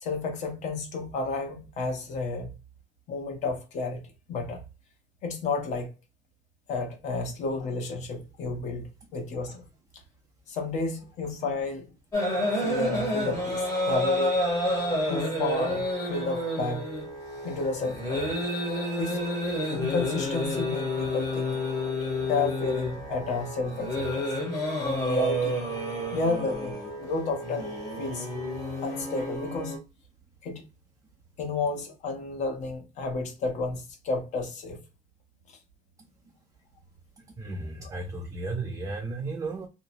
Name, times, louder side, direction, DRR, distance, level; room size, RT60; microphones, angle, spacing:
voice 1, 0.0-2.5 3.1-4.0 4.3-4.6 5.2-5.9 6.7-9.6 10.5-11.9 12.6-14.4 15.1-16.8 17.4-18.3 19.0-19.2 19.7-21.6 22.3-24.3 24.8-25.6 26.1-28.3 28.8-29.8 30.4-30.6 31.4-34.8 37.8-37.9, left 3 dB, 55° left, 0.8 m, -31 dB
sound 1, 12.1-29.8, left 1 dB, 20° left, 1.0 m, -30 dB
voice 2, 37.4-39.7, right 3 dB, 25° right, 0.4 m, -34 dB
2.8 x 2.0 x 2.6 m
cardioid pair, 145°, 14 cm